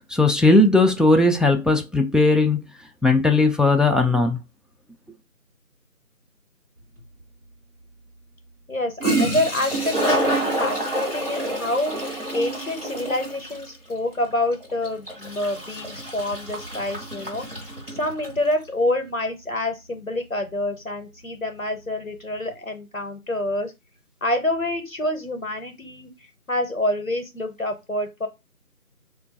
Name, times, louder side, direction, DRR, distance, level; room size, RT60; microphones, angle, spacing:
voice 1, 0.1-2.6 3.0-4.4, left 2 dB, ahead, 0.3 m, -17 dB
Toilet flush, 7.0-7.1 8.7-8.8 9.0-18.4, right 1 dB, 40° right, 1.0 m, -28 dB
voice 2, 8.7-17.6 17.9-23.7 24.2-26.1 26.5-28.3, left 1 dB, 65° left, 0.6 m, -27 dB
3.7 x 2.2 x 2.5 m
figure-of-eight pair, 170°, 45 cm